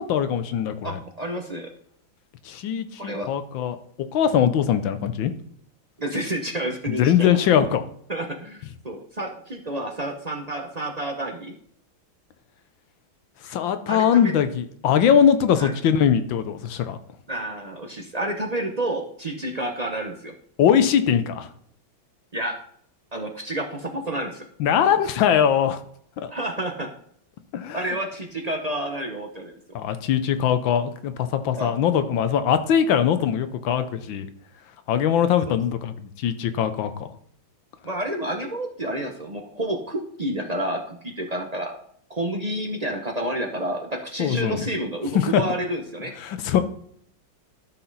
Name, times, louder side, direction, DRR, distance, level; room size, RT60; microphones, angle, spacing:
voice 1, 0.0-1.0 2.4-3.8 4.1-5.3 6.9-7.8 13.4-17.0 20.6-21.5 24.6-25.8 26.2-26.3 27.5-27.9 29.7-34.3 34.9-37.1 44.2-44.7 45.1-45.4 46.2-46.6, left 8 dB, 75° left, 10 dB, 1.5 m, -21 dB
voice 2, 0.8-1.7 3.0-3.3 6.0-7.4 8.1-11.5 13.9-14.3 15.6-15.7 17.3-20.3 22.3-22.5 23.1-24.4 26.3-26.9 27.7-29.5 31.6-31.8 35.5-35.6 37.8-41.8 42.1-46.1, right 1 dB, 40° right, 2 dB, 0.5 m, -29 dB
12.5 x 6.0 x 4.0 m, 0.64 s
omnidirectional pair, 2.2 m